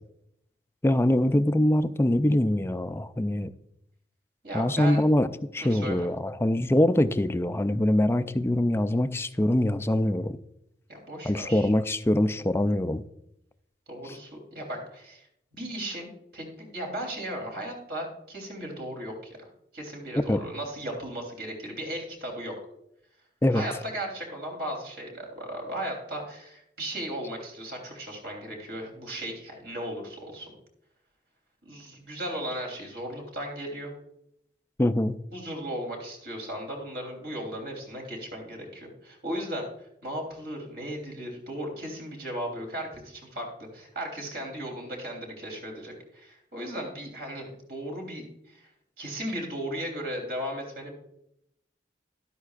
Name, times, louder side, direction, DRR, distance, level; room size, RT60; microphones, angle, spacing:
voice 1, 0.8-3.5 4.5-5.3 5.5-10.4 11.2-13.0 20.3-20.4 23.4-23.6 34.8-35.2, left 1 dB, 15° left, 11 dB, 0.4 m, -23 dB
voice 2, 4.4-5.0 5.6-6.1 10.9-11.7 13.9-15.3 15.5-16.4 16.7-19.1 19.4-22.5 23.5-30.5 31.6-33.9 35.3-39.7 40.0-48.7 49.0-50.9, right 1 dB, 60° right, 1 dB, 3.4 m, -36 dB
13.0 x 11.5 x 2.4 m, 0.78 s
head